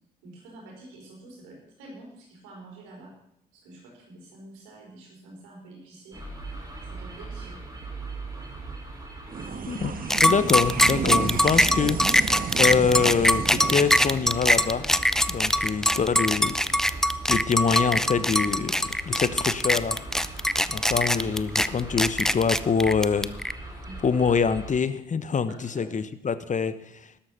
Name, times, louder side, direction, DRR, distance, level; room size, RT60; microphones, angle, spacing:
voice 1, 0.2-3.1 3.5-6.2 6.9-7.6 23.8-24.0 25.5-25.8, right 2 dB, 80° right, -1 dB, 4.7 m, -47 dB
sound 1, 6.1-24.7, right 2 dB, 20° right, 6.1 m, -39 dB
sound 2, 9.3-16.0, right 6 dB, 45° right, 1.4 m, -34 dB
sound 3, 10.1-23.5, equal, ahead, 0.7 m, -22 dB
voice 2, 10.2-14.9 15.3-16.9 17.3-20.0 20.7-23.3 24.0-27.1, left 6 dB, 40° left, 14 dB, 1.1 m, -25 dB
12.5 x 11.5 x 5.7 m, 0.77 s
hypercardioid pair, 50°, 20 cm